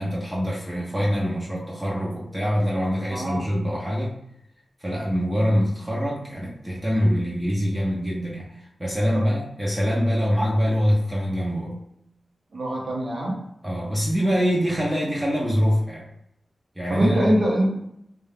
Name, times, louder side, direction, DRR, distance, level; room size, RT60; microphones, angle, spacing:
voice 1, 0.0-4.2 4.8-8.5 8.8-11.8 13.6-16.1 16.8-17.3, equal, 15° right, -5 dB, 0.5 m, -24 dB
voice 2, 3.1-3.5 9.1-9.3 12.5-13.4 16.9-17.9, right 1 dB, 65° right, -2 dB, 0.7 m, -23 dB
2.3 x 2.1 x 3.3 m, 0.76 s
wide cardioid pair, 115°, 0 cm